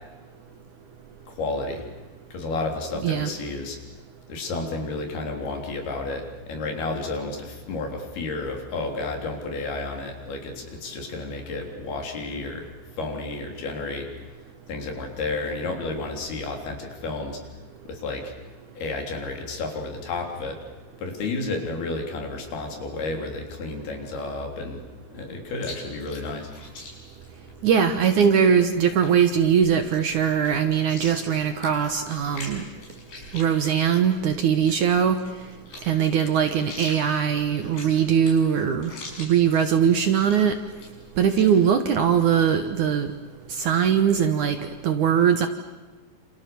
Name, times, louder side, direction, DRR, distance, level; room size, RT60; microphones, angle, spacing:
voice 1, 1.3-1.9 2.3-3.8 4.3-12.7 13.0-14.1 14.7-17.4 17.9-18.3 18.7-20.6 21.0-24.8 25.1-26.5, left 3 dB, 70° left, 3 dB, 5.5 m, -31 dB
Chewing mastication, 25.6-41.5, left 2 dB, 90° left, 8.5 m, -44 dB
voice 2, 27.6-32.6 33.3-35.2 35.9-38.9 39.2-40.5 41.2-43.1 43.5-44.6 44.8-45.5, right 8 dB, 65° right, 7 dB, 2.2 m, -21 dB
28.0 x 28.0 x 7.0 m, 1.3 s
omnidirectional pair, 4.6 m